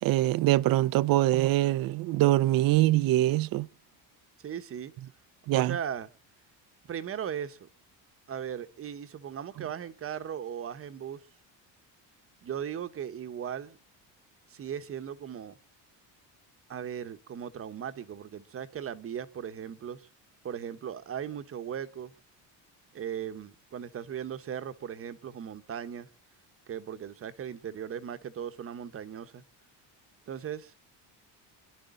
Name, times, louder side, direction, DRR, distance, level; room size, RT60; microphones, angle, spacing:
voice 1, 0.0-3.7 5.5-5.8 9.6-9.7, right 15 dB, 55° right, 0.7 m, -24 dB
voice 2, 4.4-4.9 5.5-6.1 6.9-7.7 8.3-11.2 12.4-13.8 14.5-15.5 16.7-20.1 20.4-22.1 22.9-26.1 26.7-29.4 30.3-30.7, right 8 dB, 30° right, 1.1 m, -38 dB
28.0 x 11.5 x 3.8 m
cardioid pair, 155°, 42 cm